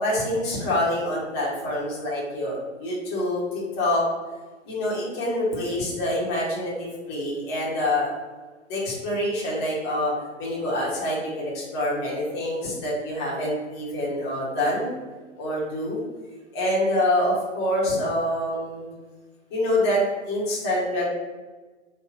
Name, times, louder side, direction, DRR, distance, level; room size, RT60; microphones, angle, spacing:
voice 1, 0.0-4.0 4.7-8.1 8.7-10.1 10.4-14.9 15.4-16.0 16.5-18.9 19.5-21.0, left 1 dB, 25° left, -5 dB, 0.9 m, -26 dB
3.3 x 2.4 x 3.7 m, 1.3 s
figure-of-eight pair, 120°, 37 cm